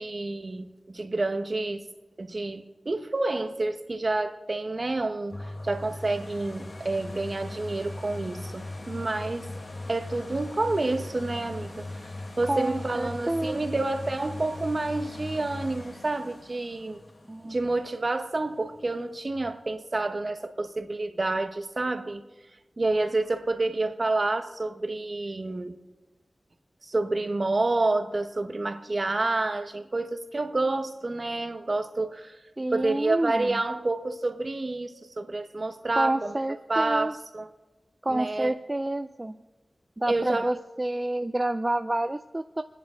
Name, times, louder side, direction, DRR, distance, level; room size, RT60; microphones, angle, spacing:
voice 1, 0.0-1.8 2.2-9.5 9.9-11.9 12.4-17.0 17.4-22.2 22.8-25.8 26.8-32.4 32.7-36.4 36.7-37.5 38.1-38.6 40.1-40.5, right 2 dB, 50° right, 1.1 m, -29 dB
sound 1, 5.3-19.0 19.5-19.6, left 2 dB, 55° left, 1.6 m, -40 dB
voice 2, 12.5-13.6 17.3-17.6 32.6-33.6 35.9-37.1 38.0-39.4 40.0-42.6, right 1 dB, 25° right, 0.4 m, -29 dB
27.5 x 10.5 x 3.8 m
wide cardioid pair, 60°, 0 cm